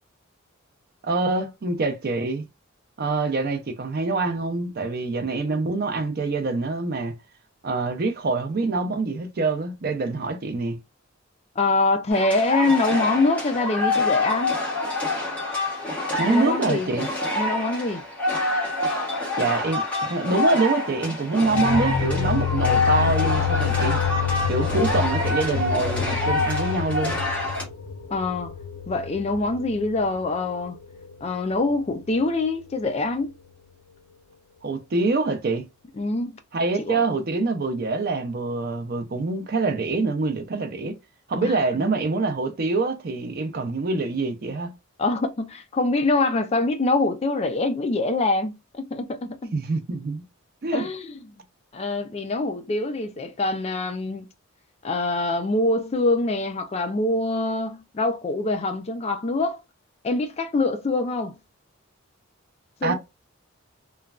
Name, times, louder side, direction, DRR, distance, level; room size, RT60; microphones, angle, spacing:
voice 1, 1.0-2.4 3.0-7.1 7.6-10.8 16.2-17.1 19.4-24.0 24.5-27.1 34.6-35.7 36.5-41.0 41.3-44.7 49.5-50.2 50.6-50.9 62.8-62.9, right 3 dB, 45° right, 0.5 m, -25 dB
voice 2, 11.6-14.6 16.2-16.9 17.3-18.0 28.1-28.5 28.9-30.8 31.2-33.4 36.0-36.4 36.8-37.0 41.4-41.9 45.0-49.5 50.7-51.4 51.7-54.3 54.8-59.6 60.0-61.4 62.8-62.9, left 2 dB, 30° left, 0.3 m, -24 dB
sound 1, 12.1-27.6, left 2 dB, 5° left, 1.0 m, -26 dB
sound 2, 21.4-30.3, left 8 dB, 75° left, 0.6 m, -27 dB
3.1 x 2.2 x 2.3 m
head